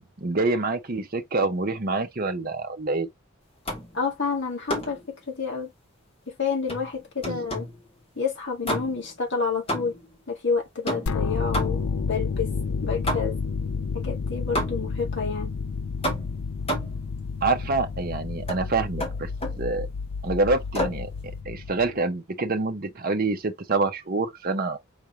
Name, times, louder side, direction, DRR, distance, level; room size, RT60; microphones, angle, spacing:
voice 1, 0.0-3.1 7.2-7.4 17.4-19.3 19.6-19.9 20.2-24.8, right 3 dB, 40° right, 0.7 m, -26 dB
sound 1, 3.7-4.0 4.7-5.1 6.7-7.8 8.6-9.2 9.7-10.2 10.9-12.0 13.1-13.5 14.6-15.0 16.0-17.1 18.5-18.7 19.0-19.7 20.7-21.1, equal, 25° left, 1.5 m, -31 dB
voice 2, 3.9-5.7 6.3-7.7 8.2-9.9 10.3-11.8 12.1-12.5 12.8-13.4 13.9-15.5, left 5 dB, 55° left, 1.8 m, -29 dB
sound 2, 11.1-22.0, left 5 dB, 80° left, 0.5 m, -30 dB
4.8 x 3.4 x 2.9 m
head